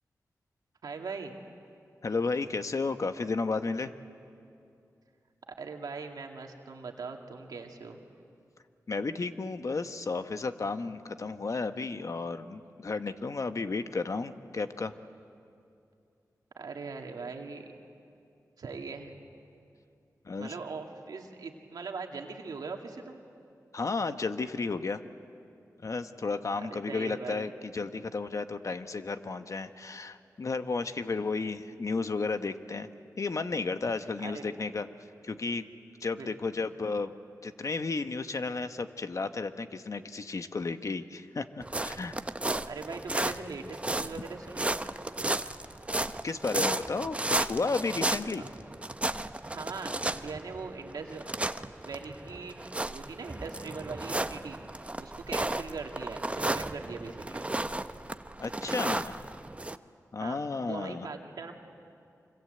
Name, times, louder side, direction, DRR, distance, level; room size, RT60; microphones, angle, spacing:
voice 1, 0.8-1.4 5.6-8.0 16.6-17.7 18.6-19.2 20.4-23.2 26.7-27.5 34.2-34.6 36.2-36.5 42.7-44.8 49.5-51.2 51.8-52.6 52.9-54.6 55.0-57.5 60.2-61.5, right 4 dB, 85° right, 3 dB, 2.1 m, -41 dB
voice 2, 2.0-3.9 8.9-14.9 20.2-20.5 23.7-25.0 25.8-32.9 33.2-34.9 35.2-35.6 36.0-37.1 37.4-42.2 46.2-48.4 58.4-59.2 60.1-61.1, left 4 dB, 55° left, 9 dB, 1.1 m, -33 dB
sound 1, 41.6-59.8, right 2 dB, 20° right, 0.7 m, -34 dB
25.5 x 25.5 x 7.8 m, 2.5 s
cardioid pair, 60°, 7 cm